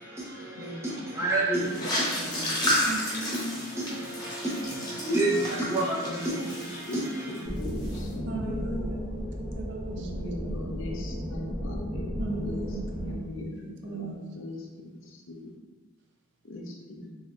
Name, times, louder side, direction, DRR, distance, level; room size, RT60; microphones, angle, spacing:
voice 1, 0.0-7.5, right 2 dB, 10° right, -6 dB, 0.7 m, -31 dB
voice 2, 0.5-0.9 1.6-1.9 2.2-2.6 4.7-4.9 6.0-8.5 9.9-12.7 13.0-15.4 16.4-17.1, left 1 dB, 60° left, 0 dB, 0.6 m, -40 dB
sound 1, 1.6-7.4 7.6-8.0, left 1 dB, 20° left, 0.8 m, -32 dB
voice 3, 2.8-3.5 8.3-10.7 12.2-14.2, right 2 dB, 55° right, 1 dB, 0.5 m, -38 dB
sound 2, 7.4-13.2, equal, 35° right, 1.2 m, -34 dB
4.2 x 3.3 x 2.4 m, 1.3 s
head